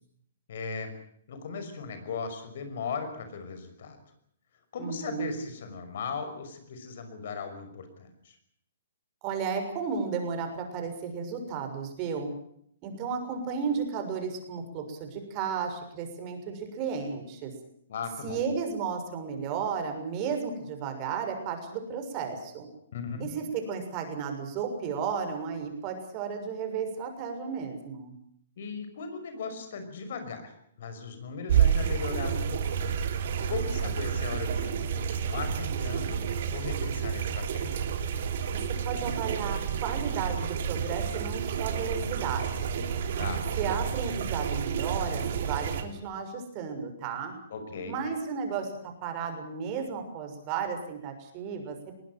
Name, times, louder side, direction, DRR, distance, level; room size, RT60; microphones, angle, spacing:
voice 1, 0.5-0.9 1.3-4.0 4.7-8.3 17.9-18.4 22.9-23.3 28.6-30.5 30.8-33.0 33.5-36.2 36.5-37.8 43.2-43.4 47.5-47.9, left 5 dB, 60° left, 8 dB, 5.8 m, -37 dB
voice 2, 4.8-5.3 9.2-12.3 12.8-17.5 18.2-22.7 23.2-28.1 38.5-42.9 43.6-47.3 47.9-52.0, right 6 dB, 35° right, 6 dB, 6.6 m, -33 dB
sound 1, 31.5-45.8, right 7 dB, 55° right, 3.4 m, -30 dB
21.5 x 18.5 x 9.2 m, 0.68 s
hypercardioid pair, 130°, 0 cm